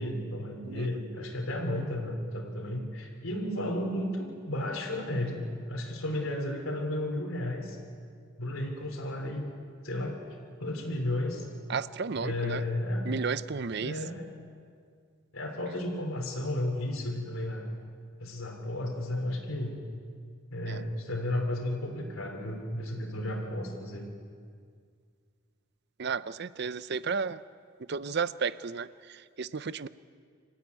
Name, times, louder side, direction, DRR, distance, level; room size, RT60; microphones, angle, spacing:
voice 1, 0.0-7.8 8.4-9.4 9.8-10.2 10.6-11.5 12.2-13.0 13.8-14.3 15.3-17.7 18.2-19.8 20.5-24.1, left 1 dB, 80° left, 0 dB, 3.4 m, -33 dB
voice 2, 11.7-12.6 13.1-13.9 20.7-20.8 26.0-27.4 27.9-29.9, right 5 dB, 55° right, 16 dB, 0.5 m, -33 dB
26.0 x 14.0 x 9.6 m, 2.1 s
head